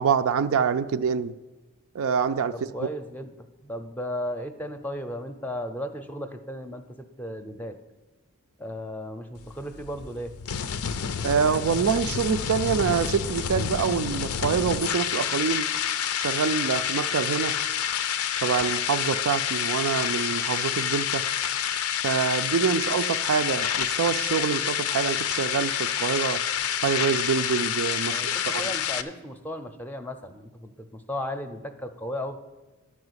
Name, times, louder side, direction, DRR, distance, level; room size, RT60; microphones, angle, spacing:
voice 1, 0.0-1.3 1.9-2.5 11.2-15.7 16.2-17.6 18.4-21.2 22.0-26.4 26.8-28.6, right 6 dB, 65° right, 11 dB, 0.4 m, -26 dB
voice 2, 2.5-7.8 8.6-10.3 28.1-32.4, left 1 dB, 10° left, 8 dB, 0.6 m, -35 dB
sound 1, 9.4-29.0, left 8 dB, 70° left, 0.5 m, -28 dB
11.5 x 4.8 x 8.0 m, 1.2 s
head